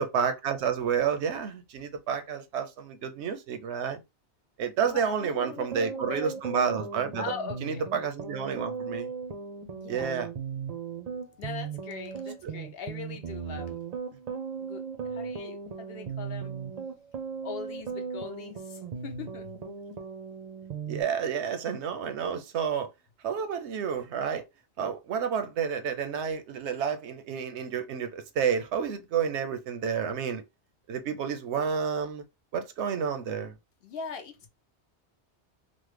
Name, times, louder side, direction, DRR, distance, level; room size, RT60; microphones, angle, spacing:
voice 1, 0.0-4.0 4.6-7.3 7.6-9.1 9.9-10.3 12.4-12.5 20.9-22.9 23.2-24.4 24.8-30.4 30.9-32.2 32.5-33.5, right 7 dB, 80° right, 0.9 m, -30 dB
voice 2, 4.8-6.4 7.2-7.9 9.7-10.1 11.4-13.8 14.6-14.8 15.1-16.5 17.4-19.6 33.8-34.5, left 6 dB, 65° left, 0.7 m, -41 dB
sound 1, 5.4-21.0, right 6 dB, 50° right, 0.5 m, -37 dB
3.1 x 2.1 x 3.2 m
omnidirectional pair, 1.2 m